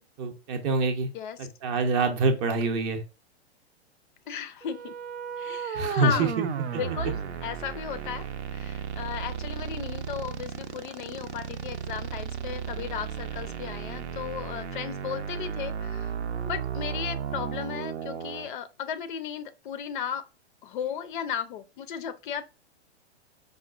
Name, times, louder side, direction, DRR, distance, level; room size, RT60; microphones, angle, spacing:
voice 1, 0.2-1.1 1.4-3.0 5.7-6.5, right 4 dB, 30° right, 0.6 m, -26 dB
voice 2, 4.3-4.9 5.4-6.3 6.8-8.3 8.5-16.1 16.5-20.3 20.6-22.4, left 8 dB, 50° left, 0.4 m, -35 dB
sound 1, 4.6-18.5, right 7 dB, 80° right, 0.6 m, -34 dB
4.8 x 2.1 x 2.3 m
hypercardioid pair, 125°, 33 cm